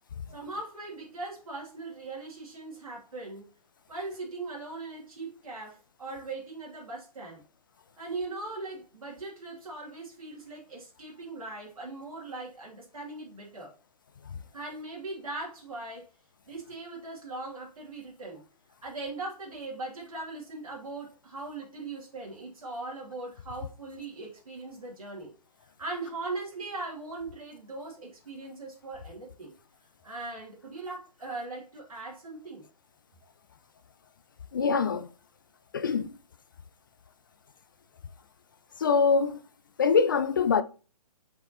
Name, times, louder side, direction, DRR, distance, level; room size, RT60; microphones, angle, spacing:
voice 1, 0.3-3.5 3.9-7.4 8.0-13.7 14.5-16.1 16.5-18.4 18.8-25.3 25.8-29.5 30.0-32.7, right 3 dB, 60° right, 2.7 m, -39 dB
voice 2, 34.5-35.1 35.7-36.1 38.8-39.4 39.8-40.6, left 5 dB, 30° left, 0.4 m, -24 dB
6.3 x 5.3 x 2.9 m
figure-of-eight pair, 130°, 20 cm